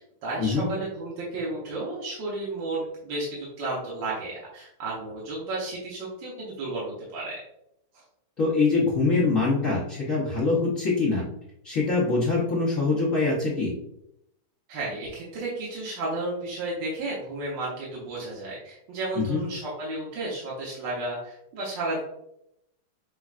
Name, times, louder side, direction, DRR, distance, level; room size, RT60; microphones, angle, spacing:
voice 1, 0.2-7.3 7.9-8.0 14.7-22.0, right 2 dB, 65° right, -6 dB, 1.5 m, -33 dB
voice 2, 8.4-11.2 11.6-13.7 19.3-19.4, left 3 dB, 50° left, -7 dB, 1.0 m, -24 dB
6.3 x 2.3 x 2.4 m, 0.79 s
omnidirectional pair, 2.3 m